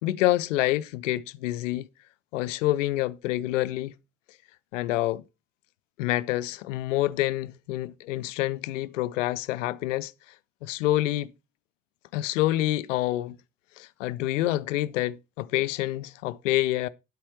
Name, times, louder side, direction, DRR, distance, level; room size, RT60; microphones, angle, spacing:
voice 1, 0.0-1.9 2.3-3.9 4.7-5.2 6.0-10.1 10.6-11.3 12.1-13.4 13.8-16.9, left 16 dB, 70° left, 0.6 m, -27 dB
9.9 x 8.5 x 4.6 m
figure-of-eight pair, 50°, 40 cm